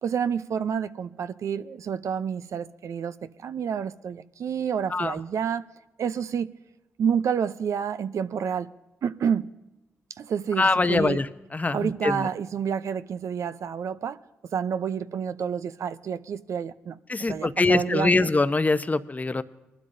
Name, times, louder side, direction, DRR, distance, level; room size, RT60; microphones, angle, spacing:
voice 1, 0.0-5.6 6.0-6.5 7.0-8.7 9.0-9.5 10.2-11.2 11.7-14.2 14.5-18.3, right 7 dB, 65° right, 0.6 m, -29 dB
voice 2, 10.6-11.3 11.5-12.3 17.1-19.4, left 3 dB, 30° left, 0.8 m, -23 dB
21.0 x 12.0 x 2.7 m
supercardioid pair, 50°, 6 cm